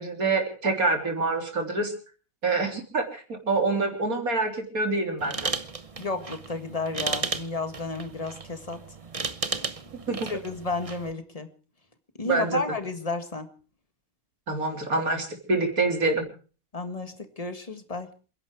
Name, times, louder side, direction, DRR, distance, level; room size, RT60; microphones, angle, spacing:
voice 1, 0.0-1.9 2.4-5.5 10.1-10.3 12.3-12.6 14.5-16.2, right 3 dB, 90° right, 3 dB, 4.0 m, -26 dB
sound 1, 5.2-11.1, right 4 dB, 30° right, 1.0 m, -34 dB
voice 2, 6.0-8.8 10.1-11.5 12.2-13.5 16.7-18.1, left 3 dB, 25° left, 9 dB, 1.8 m, -32 dB
28.0 x 11.0 x 4.7 m, 0.39 s
omnidirectional pair, 1.5 m